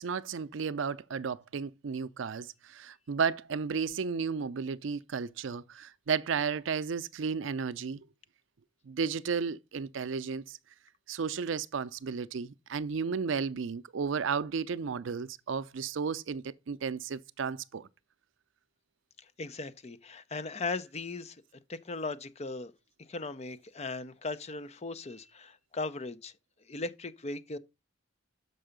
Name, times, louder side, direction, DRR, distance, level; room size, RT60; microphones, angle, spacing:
voice 1, 0.0-8.0 8.8-10.6 11.1-17.9, right 5 dB, 70° right, 0.5 m, -33 dB
voice 2, 19.2-21.4 21.7-22.7 23.1-26.3 26.7-27.6, left 3 dB, 35° left, 0.5 m, -38 dB
6.8 x 5.4 x 5.0 m
head